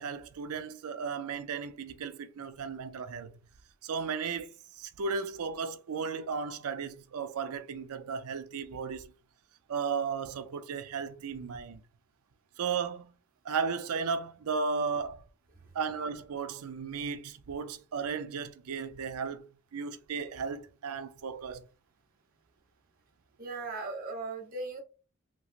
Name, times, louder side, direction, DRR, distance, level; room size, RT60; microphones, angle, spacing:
voice 1, 0.0-3.3 3.8-9.1 9.7-11.8 12.6-13.1 13.4-15.2 15.7-21.6, right 5 dB, 80° right, 0.4 m, -35 dB
voice 2, 23.4-24.8, right 3 dB, 40° right, 0.8 m, -37 dB
3.0 x 2.8 x 2.4 m
head